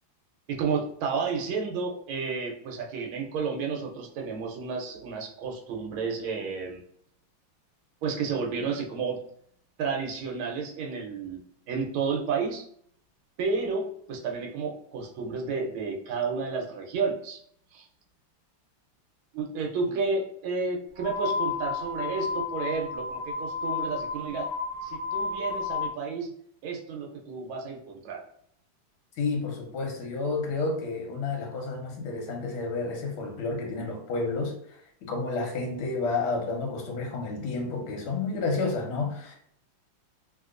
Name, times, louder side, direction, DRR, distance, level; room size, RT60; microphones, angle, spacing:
voice 1, 0.5-6.8 8.0-9.2 9.8-12.6 13.4-17.4 17.7-17.9 19.3-24.5 24.8-26.3 26.6-28.2, right 5 dB, 75° right, 1 dB, 1.4 m, -31 dB
sound 1, 20.9-25.9, left 5 dB, 45° right, 0.9 m, -32 dB
voice 2, 29.2-34.8 35.0-39.4, left 3 dB, 75° left, 1 dB, 1.6 m, -30 dB
3.2 x 2.8 x 2.4 m, 0.66 s
omnidirectional pair, 2.4 m